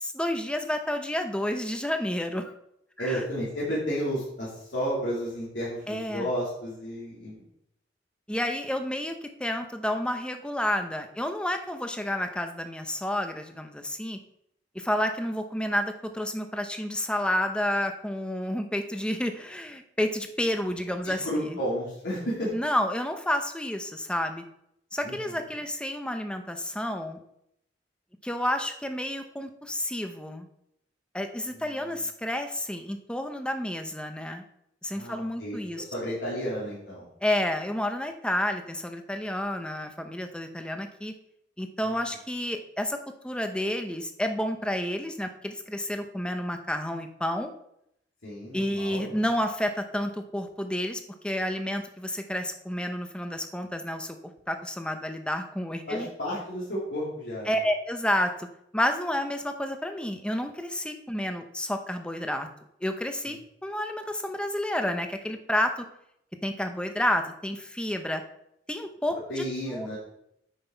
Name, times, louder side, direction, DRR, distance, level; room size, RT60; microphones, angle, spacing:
voice 1, 0.0-2.5 3.0-3.2 5.9-6.3 8.3-14.2 14.7-21.6 22.5-24.4 24.9-27.2 28.2-30.5 31.1-34.4 34.8-35.8 37.2-41.1 41.6-43.0 43.2-47.5 48.5-54.2 54.5-56.1 57.5-58.5 58.7-62.5 62.8-65.8 66.4-68.2 68.7-69.4 69.7-69.9, left 1 dB, 5° left, 6 dB, 0.7 m, -30 dB
voice 2, 3.0-7.4 21.0-22.5 25.0-25.4 31.5-31.9 34.9-35.6 35.9-37.1 41.8-41.9 48.2-49.2 55.9-57.6 63.3-63.4 69.3-70.0, equal, 80° left, -8 dB, 3.2 m, -32 dB
9.4 x 6.0 x 4.5 m, 0.76 s
head